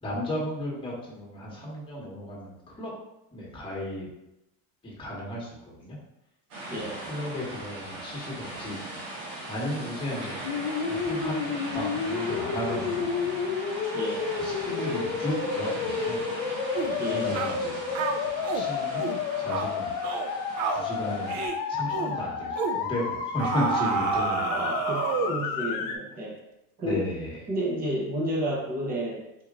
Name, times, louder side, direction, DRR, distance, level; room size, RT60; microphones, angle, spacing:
voice 1, 0.0-2.9 3.3-4.1 4.8-6.0 6.7-8.8 9.1-10.5 10.9-13.2 14.4-16.2 16.8-17.8 18.5-19.1 19.4-19.9 20.7-21.4 21.7-24.6 25.0-25.1 26.8-27.4, equal, 15° left, -4 dB, 1.4 m, -34 dB
sound 1, 6.5-21.5, right 1 dB, 85° right, 1.6 m, -39 dB
voice 2, 6.7-7.0 13.9-14.3 17.0-17.3 24.5-26.4 26.8-27.1 27.5-29.4, right 1 dB, 25° right, -3 dB, 1.0 m, -31 dB
sound 2, 10.4-26.0, left 6 dB, 60° left, 0.6 m, -31 dB
sound 3, 16.7-17.0 17.3-17.6 17.9-18.7 19.0-19.2 19.5-19.7 20.0-20.3 20.6-20.9 21.3-21.6 21.9-22.1 22.6-22.8 23.4-25.4, right 6 dB, 50° right, 0.5 m, -29 dB
4.5 x 2.8 x 3.7 m, 0.89 s
cardioid pair, 145°, 36 cm